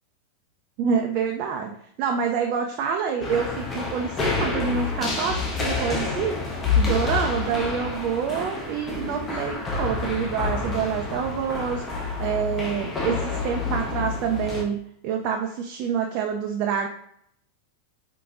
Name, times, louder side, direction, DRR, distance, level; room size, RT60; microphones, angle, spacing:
voice 1, 0.8-6.4 6.8-11.8 12.2-14.8 15.0-16.9, right 7 dB, 40° right, 2 dB, 0.4 m, -27 dB
sound 1, 3.2-14.6, left 4 dB, 20° left, 0.8 m, -28 dB
5.0 x 3.7 x 2.4 m, 0.70 s
figure-of-eight pair, 90°, 0 cm